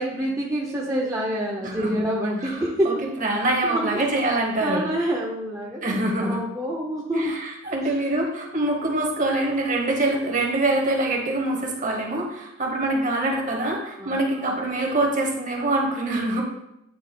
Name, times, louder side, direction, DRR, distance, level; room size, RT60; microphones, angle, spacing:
voice 1, 0.0-3.0 3.6-4.0 4.6-7.4 7.8-7.9 14.0-14.2, right 1 dB, 15° right, -3 dB, 0.6 m, -27 dB
voice 2, 1.6-1.9 2.4-4.9 5.8-6.4 7.1-16.4, right 2 dB, 40° right, 1 dB, 1.1 m, -25 dB
8.6 x 3.0 x 3.7 m, 0.83 s
head